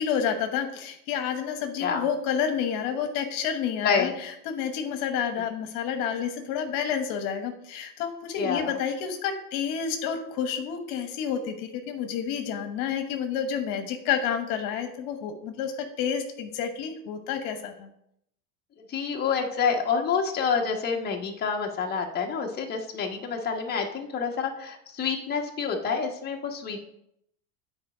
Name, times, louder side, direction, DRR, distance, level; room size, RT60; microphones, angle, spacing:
voice 1, 0.0-15.7 16.0-17.9, left 7 dB, 60° left, 6 dB, 1.2 m, -29 dB
voice 2, 8.3-8.8 18.9-26.8, left 6 dB, 25° left, 0 dB, 1.2 m, -28 dB
8.7 x 4.4 x 4.9 m, 0.75 s
supercardioid pair, 125°, 39 cm